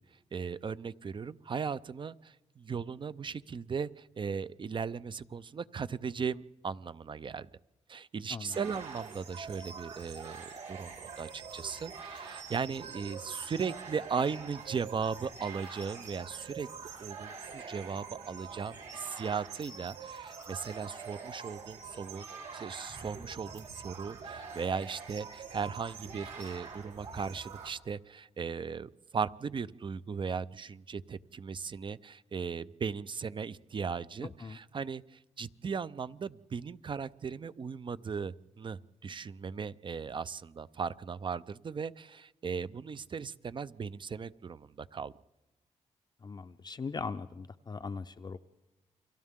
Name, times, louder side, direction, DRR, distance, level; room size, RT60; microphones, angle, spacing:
voice 1, 0.3-7.5 7.9-16.7 17.0-22.3 22.5-35.0 35.4-45.1, right 6 dB, 40° right, 16 dB, 0.6 m, -37 dB
sound 1, 8.5-27.7, right 5 dB, 80° right, 4.9 m, -45 dB
voice 2, 46.2-48.4, left 4 dB, 35° left, 8 dB, 0.6 m, -40 dB
29.5 x 23.5 x 3.7 m, 1.1 s
cardioid pair, 80°, 12 cm